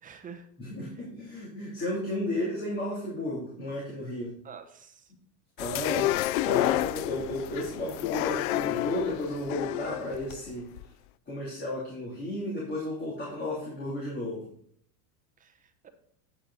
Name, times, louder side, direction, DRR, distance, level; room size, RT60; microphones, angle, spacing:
voice 1, 0.0-0.5 4.4-5.1 15.4-15.9, right 6 dB, 15° right, 6 dB, 0.9 m, -47 dB
voice 2, 0.6-4.3 5.6-10.7 11.3-14.5, left 1 dB, 20° left, -5 dB, 3.0 m, -33 dB
sound 1, 5.6-10.8, left 15 dB, 60° left, 0.5 m, -30 dB
9.1 x 8.6 x 4.1 m, 0.63 s
supercardioid pair, 150°, 48 cm